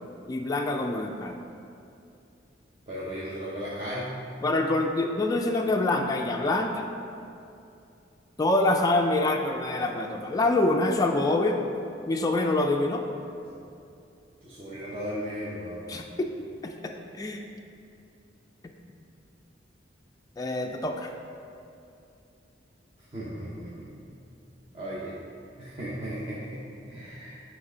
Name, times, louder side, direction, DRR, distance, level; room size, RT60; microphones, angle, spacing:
voice 1, 0.3-1.4 4.4-6.9 8.4-11.6 12.1-13.0 15.9-16.3 16.6-17.4 20.4-21.1, left 2 dB, 20° left, 2 dB, 0.3 m, -26 dB
voice 2, 2.9-4.2 14.4-15.9 23.1-23.9 24.7-25.3 25.6-27.5, equal, 30° right, -8 dB, 0.8 m, -36 dB
7.8 x 3.3 x 5.0 m, 2.6 s
head